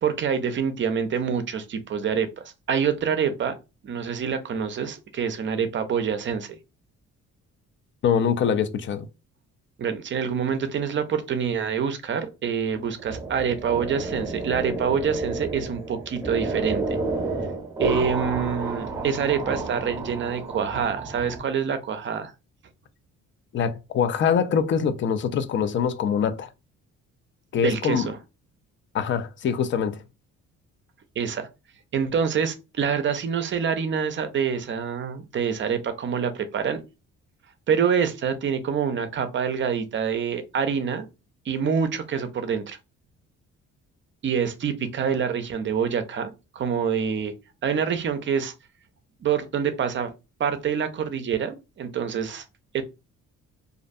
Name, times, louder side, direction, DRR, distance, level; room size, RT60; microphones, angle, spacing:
voice 1, 0.0-3.5 3.8-6.5 9.8-16.8 17.8-22.3 27.5-28.2 31.2-31.5 31.9-36.8 37.7-41.1 41.5-42.8 44.2-47.3 47.6-48.5 49.2-50.1 50.4-52.4 52.7-52.8, right 7 dB, 40° right, 0.5 m, -26 dB
voice 2, 8.0-9.0 23.5-26.5 27.5-28.1 28.9-30.0, left 7 dB, 40° left, 0.4 m, -24 dB
sound 1, 12.7-21.4, right 3 dB, 10° right, 0.8 m, -31 dB
2.5 x 2.2 x 2.5 m
cardioid pair, 90°, 30 cm